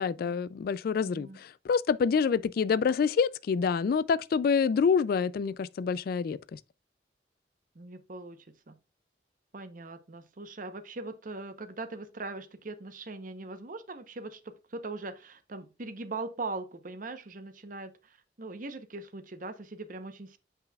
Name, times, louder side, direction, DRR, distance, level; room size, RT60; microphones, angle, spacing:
voice 1, 0.0-6.6, left 6 dB, 55° left, 0.3 m, -27 dB
voice 2, 7.7-8.8 9.5-20.4, right 3 dB, 50° right, 0.9 m, -41 dB
7.9 x 5.6 x 2.3 m
head